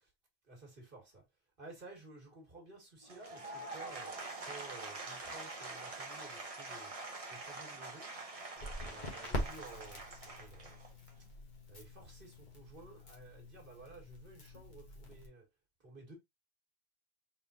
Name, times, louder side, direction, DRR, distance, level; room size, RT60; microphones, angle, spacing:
voice 1, 0.5-1.2 1.6-4.1 4.4-6.9 7.3-8.1 8.8-10.8 11.7-15.4 15.8-16.1, right 2 dB, 55° right, 1.9 m, -54 dB
Applause / Crowd, 3.0-11.2, right 2 dB, 35° right, 1.0 m, -45 dB
Crackle, 8.6-15.3, equal, 45° left, 1.5 m, -45 dB
4.5 x 3.8 x 2.7 m
omnidirectional pair, 1.1 m